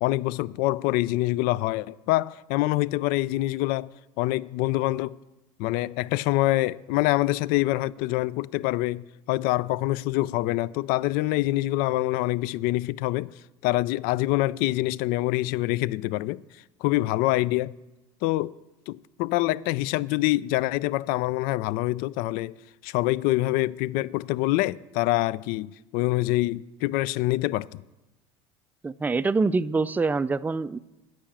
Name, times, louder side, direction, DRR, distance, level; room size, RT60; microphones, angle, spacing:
voice 1, 0.0-5.2 5.6-13.3 13.6-16.4 16.8-17.7 18.2-18.5 18.9-22.6 22.8-27.8, left 18 dB, 65° left, 0.4 m, -25 dB
voice 2, 28.8-30.8, right 3 dB, 10° right, 0.4 m, -25 dB
10.5 x 7.6 x 7.2 m
supercardioid pair, 95°, 17 cm